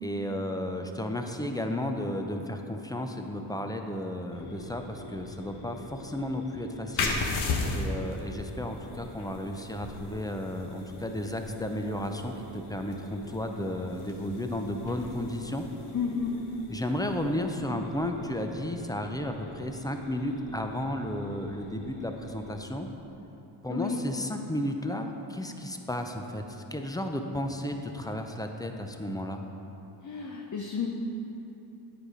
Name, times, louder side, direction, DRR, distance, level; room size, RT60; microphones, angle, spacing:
voice 1, 0.0-7.2 7.7-15.7 16.7-22.9 23.6-26.4 26.7-29.4, left 1 dB, 10° left, 4 dB, 0.6 m, -33 dB
sound 1, 4.3-22.6, left 2 dB, 55° left, 1.1 m, -47 dB
sound 2, 6.9-18.2, left 3 dB, 85° left, 1.0 m, -37 dB
voice 2, 15.9-16.3 23.7-24.0 30.0-30.9, left 7 dB, 40° left, 0 dB, 0.8 m, -31 dB
9.1 x 4.9 x 4.9 m, 3.0 s
cardioid pair, 70°, 47 cm